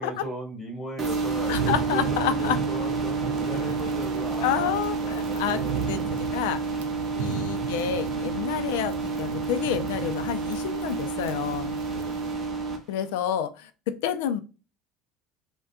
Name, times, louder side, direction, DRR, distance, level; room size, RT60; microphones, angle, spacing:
voice 1, 0.0-6.2 7.1-7.4 11.8-12.4, equal, 5° left, 1 dB, 1.5 m, -38 dB
sound 1, 1.0-12.8, right 4 dB, 30° right, 0.8 m, -29 dB
sound 2, 1.4-12.3, right 9 dB, 85° right, 0.4 m, -36 dB
voice 2, 1.5-2.6 4.4-6.0 6.3-6.6 7.2-11.8 12.9-14.4, left 10 dB, 85° left, 10 dB, 0.4 m, -29 dB
3.7 x 2.2 x 2.2 m, 0.32 s
supercardioid pair, 120°, 0 cm